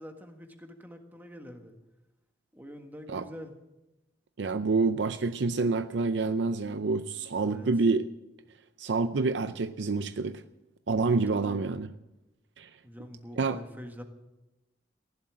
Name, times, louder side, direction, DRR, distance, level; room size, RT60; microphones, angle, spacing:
voice 1, 0.0-1.8 2.5-3.5 7.4-7.7 11.3-11.6 12.8-14.0, equal, 10° right, 4 dB, 1.6 m, -45 dB
voice 2, 4.4-8.0 8.8-10.4 10.9-11.9 12.6-12.7 13.4-13.6, right 3 dB, 85° right, 11 dB, 0.5 m, -27 dB
15.5 x 11.5 x 7.5 m, 0.98 s
head